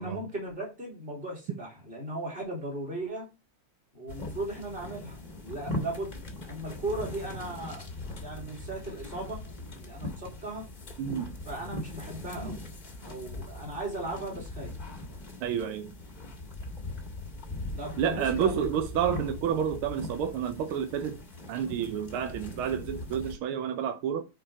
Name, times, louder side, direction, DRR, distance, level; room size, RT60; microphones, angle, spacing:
voice 1, 0.0-3.3 3.9-6.2 6.4-7.9 8.2-9.4 9.7-10.7 11.4-12.6 13.0-14.8 17.7-18.6, right 1 dB, 25° right, 3.6 m, -37 dB
sound 1, 4.1-23.4, left 1 dB, 25° left, 1.3 m, -40 dB
voice 2, 11.0-11.4 15.4-15.9 18.0-21.2 21.5-24.2, right 8 dB, 80° right, 1.7 m, -30 dB
7.6 x 4.8 x 5.0 m
omnidirectional pair, 2.3 m